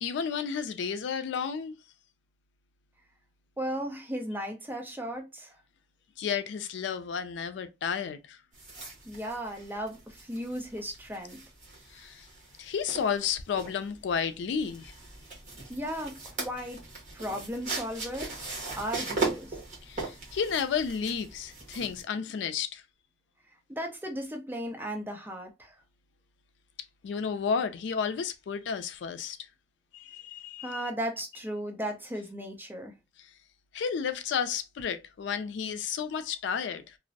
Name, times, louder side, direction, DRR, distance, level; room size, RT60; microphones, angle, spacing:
voice 1, 0.0-1.7 6.2-8.4 11.9-12.3 12.6-14.9 19.8-22.8 27.0-29.4 29.9-30.8 33.2-33.3 33.7-37.0, left 6 dB, 75° left, 0.3 m, -32 dB
voice 2, 3.6-5.5 9.0-11.4 15.7-16.8 17.1-18.4 18.8-19.6 23.7-25.7 30.6-32.9, equal, 10° right, 0.5 m, -36 dB
sound 1, 8.5-22.0, right 3 dB, 45° right, 1.0 m, -39 dB
2.5 x 2.0 x 2.5 m
head